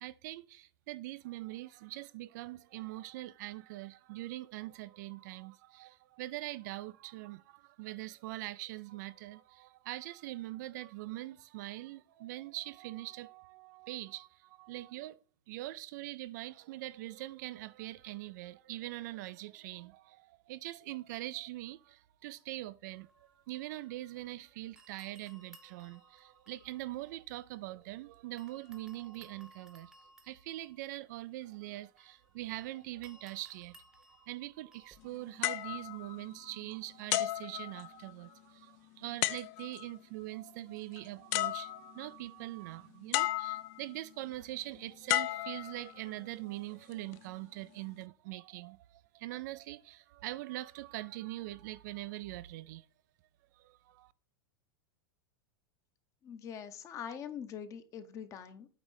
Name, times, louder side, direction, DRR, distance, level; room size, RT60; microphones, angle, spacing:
voice 1, 0.0-15.2 15.5-52.9 53.5-54.1, right 17 dB, 50° right, 0.4 m, -43 dB
sound 1, 22.9-24.4 24.8-28.0 28.4-35.2, right 1 dB, 5° right, 0.9 m, -62 dB
sound 2, 35.4-36.6 37.1-38.3 39.2-39.9 41.0-41.1 41.3-42.1 43.1-43.9 45.1-46.2 46.9-47.2, left 16 dB, 45° left, 0.5 m, -34 dB
voice 2, 56.2-58.7, left 8 dB, 25° left, 0.9 m, -43 dB
8.8 x 3.1 x 6.3 m
supercardioid pair, 150°, 12 cm